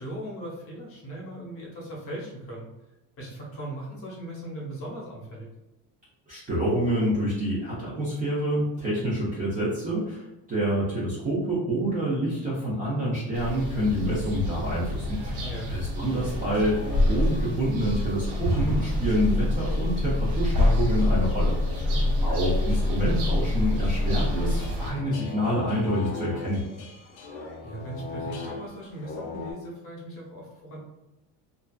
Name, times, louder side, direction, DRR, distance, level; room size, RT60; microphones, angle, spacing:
voice 1, 0.0-2.7 3.2-5.5 15.4-15.7 21.8-22.2 27.6-30.8, right 1 dB, 35° left, -4 dB, 0.8 m, -38 dB
voice 2, 6.3-21.9 22.2-26.6, equal, 20° right, -7 dB, 0.4 m, -27 dB
sound 1, 13.3-24.9, left 1 dB, 70° right, 1.0 m, -26 dB
sound 2, 16.3-29.5, left 3 dB, 65° left, 0.6 m, -41 dB
2.5 x 2.3 x 2.2 m, 0.99 s
cardioid pair, 170°, 39 cm